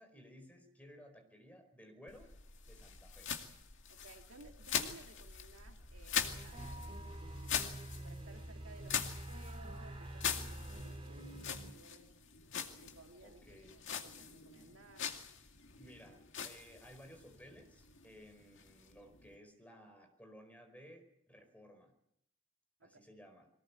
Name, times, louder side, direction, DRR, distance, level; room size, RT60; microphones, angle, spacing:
voice 1, 0.0-2.3 2.6-3.3 13.2-13.8 15.8-21.9 22.8-23.5, equal, 5° left, 6 dB, 4.8 m, -57 dB
sound 1, 2.1-19.4, left 7 dB, 60° left, 2.4 m, -43 dB
voice 2, 3.9-6.9 8.0-12.2 12.8-15.1 22.8-23.0, right 2 dB, 70° right, 4 dB, 2.5 m, -58 dB
sound 2, 6.2-11.7, right 1 dB, 25° right, 4.3 m, -46 dB
23.0 x 19.5 x 8.4 m, 0.75 s
head